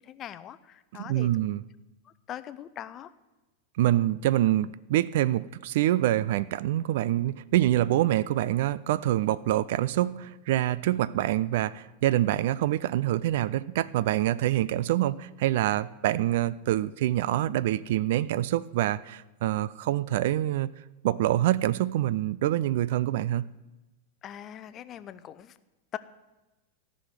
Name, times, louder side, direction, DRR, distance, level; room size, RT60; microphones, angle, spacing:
voice 1, 0.0-1.4 2.0-3.1 24.2-25.6 25.9-26.0, left 11 dB, 30° left, 14 dB, 0.6 m, -41 dB
voice 2, 1.0-1.6 3.8-20.7 21.0-23.5, right 13 dB, 55° right, 20 dB, 0.4 m, -26 dB
14.5 x 6.4 x 9.1 m, 1.1 s
figure-of-eight pair, 90°, 0 cm